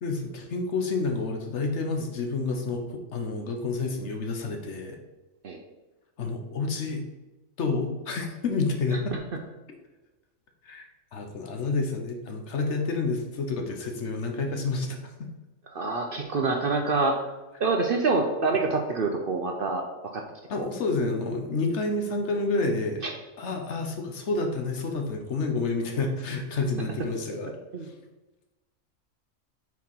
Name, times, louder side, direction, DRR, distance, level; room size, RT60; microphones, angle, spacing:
voice 1, 0.0-5.0 6.2-7.0 7.6-9.2 10.6-15.3 20.5-23.0 23.4-27.6 27.8-27.9, left 3 dB, 60° left, 3 dB, 1.1 m, -29 dB
voice 2, 15.7-17.2 17.6-19.8 20.1-20.2 20.6-20.7 27.7-27.9, right 3 dB, 55° right, 3 dB, 0.7 m, -26 dB
4.7 x 4.7 x 5.5 m, 1.1 s
omnidirectional pair, 1.4 m